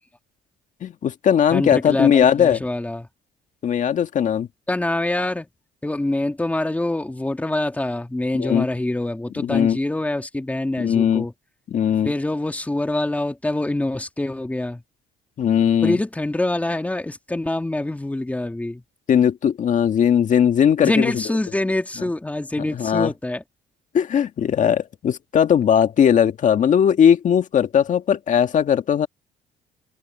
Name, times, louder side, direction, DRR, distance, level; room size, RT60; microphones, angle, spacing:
voice 1, 0.8-2.6 3.6-4.5 8.3-8.7 9.4-9.8 10.8-11.3 11.7-12.1 15.4-16.0 19.1-21.2 22.7-23.1 23.9-29.1, left 8 dB, 50° left, 1.9 m, -18 dB
voice 2, 1.5-3.1 4.7-5.5 5.8-11.3 12.0-14.8 15.8-18.8 20.8-23.4, left 1 dB, 10° left, 2.3 m, -25 dB
cardioid pair, 110°, 17 cm